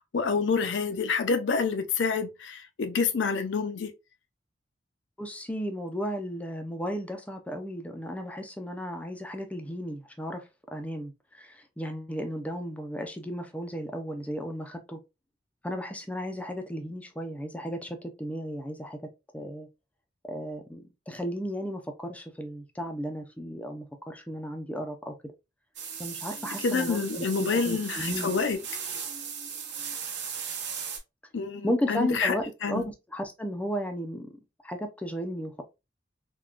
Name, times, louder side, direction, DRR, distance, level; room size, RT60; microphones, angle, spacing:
voice 1, 0.0-3.9 26.6-28.6 31.3-32.9, left 5 dB, 65° left, 0.5 m, -28 dB
voice 2, 5.2-10.4 10.7-15.0 15.6-19.0 19.3-19.7 20.3-25.1 26.0-28.3 31.6-34.3 34.6-35.6, equal, 5° left, 0.4 m, -34 dB
sound 1, 25.8-31.0, right 7 dB, 60° right, 0.8 m, -37 dB
3.5 x 2.2 x 2.3 m
head